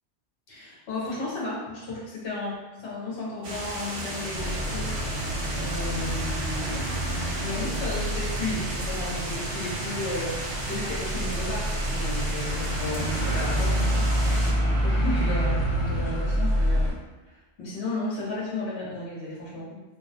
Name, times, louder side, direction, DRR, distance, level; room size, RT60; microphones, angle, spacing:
voice 1, 0.5-5.3 5.6-14.1 14.5-16.9 17.3-19.8, left 2 dB, 65° left, -6 dB, 1.0 m, -34 dB
sound 1, 3.4-14.5, right 2 dB, 65° right, 0.3 m, -34 dB
sound 2, 4.3-16.9, equal, 45° left, 1.1 m, -27 dB
2.4 x 2.2 x 2.7 m, 1.1 s
omnidirectional pair, 1.2 m